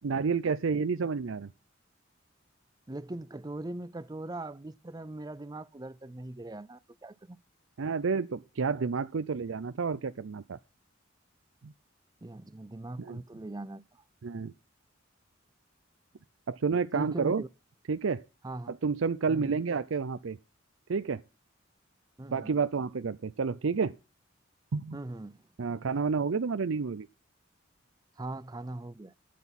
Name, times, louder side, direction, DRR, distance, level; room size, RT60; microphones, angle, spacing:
voice 1, 0.0-1.5 7.8-10.6 11.6-11.7 13.0-13.2 14.2-14.5 16.5-17.4 17.9-18.2 18.7-20.4 20.9-21.2 22.3-23.9 24.7-25.0 25.6-27.1, right 5 dB, 85° right, 0.5 m, -30 dB
voice 2, 2.9-7.4 12.2-14.0 16.9-17.5 18.4-18.7 19.3-19.5 22.2-22.5 24.9-25.4 28.2-29.1, right 2 dB, 20° right, 0.5 m, -40 dB
12.5 x 9.2 x 4.2 m
head